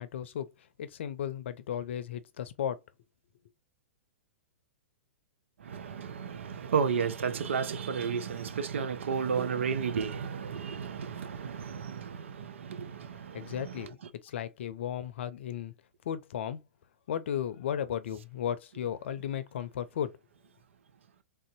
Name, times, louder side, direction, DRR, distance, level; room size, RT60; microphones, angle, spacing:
voice 1, 0.0-2.8 13.3-14.0 14.2-15.7 16.0-16.6 17.1-20.1, left 9 dB, 65° left, 0.6 m, -35 dB
voice 2, 5.6-13.7, right 6 dB, 75° right, 0.6 m, -33 dB
3.5 x 2.7 x 2.5 m
hypercardioid pair, 115°, 7 cm